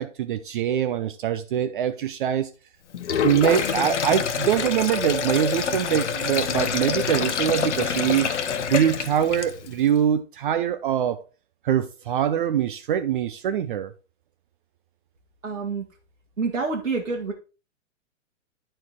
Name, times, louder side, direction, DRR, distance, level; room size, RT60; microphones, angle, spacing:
voice 1, 0.0-2.5 3.2-8.3 8.7-11.2 11.6-13.9, right 9 dB, 40° right, 0.6 m, -23 dB
Sink (filling or washing), 2.9-9.8, left 7 dB, 65° left, 0.9 m, -26 dB
voice 2, 15.4-15.8 16.4-17.3, right 4 dB, 80° right, 1.7 m, -27 dB
9.7 x 4.5 x 4.5 m
figure-of-eight pair, 115°, 38 cm